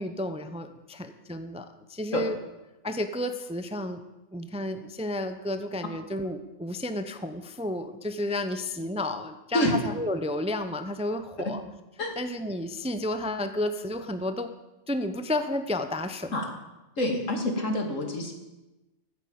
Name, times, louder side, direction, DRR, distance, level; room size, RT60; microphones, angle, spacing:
voice 1, 0.0-2.4 2.8-4.0 4.3-11.6 12.2-14.5 14.9-16.3, left 1 dB, 5° right, 8 dB, 0.6 m, -31 dB
voice 2, 17.0-18.3, left 1 dB, 75° left, 3 dB, 2.7 m, -27 dB
14.0 x 8.9 x 8.7 m, 1.0 s
omnidirectional pair, 1.3 m